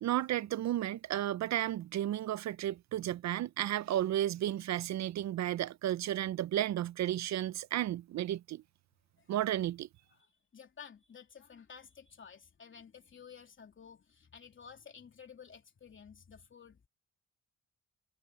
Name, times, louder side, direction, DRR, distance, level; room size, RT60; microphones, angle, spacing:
voice 1, 0.0-8.6 9.3-9.9, right 12 dB, 65° right, 0.6 m, -33 dB
voice 2, 10.1-16.9, left 7 dB, 40° left, 3.1 m, -53 dB
cardioid pair, 90°, 30 cm